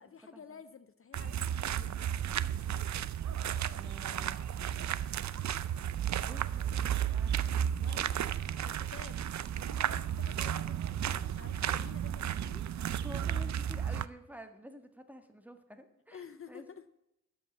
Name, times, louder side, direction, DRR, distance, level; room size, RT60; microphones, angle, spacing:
voice 1, 0.0-2.0 7.8-8.1 8.6-9.3 9.5-12.7 16.1-16.8, left 6 dB, 45° left, 11 dB, 0.6 m, -51 dB
sound 1, 1.1-14.1, right 9 dB, 60° right, 0.5 m, -33 dB
voice 2, 3.7-4.4 6.1-7.4 13.0-16.7, equal, 5° right, 7 dB, 1.5 m, -50 dB
13.0 x 5.5 x 7.2 m, 0.86 s
cardioid pair, 70°, 31 cm